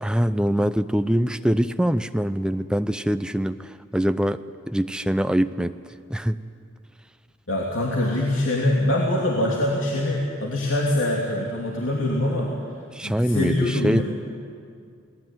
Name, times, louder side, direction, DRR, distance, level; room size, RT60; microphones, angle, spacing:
voice 1, 0.0-5.8 6.1-6.4 12.9-14.0, equal, 5° right, 10 dB, 0.6 m, -23 dB
voice 2, 7.5-12.5 13.0-14.0, left 1 dB, 80° left, -3 dB, 3.2 m, -23 dB
28.0 x 20.0 x 9.4 m, 2.3 s
head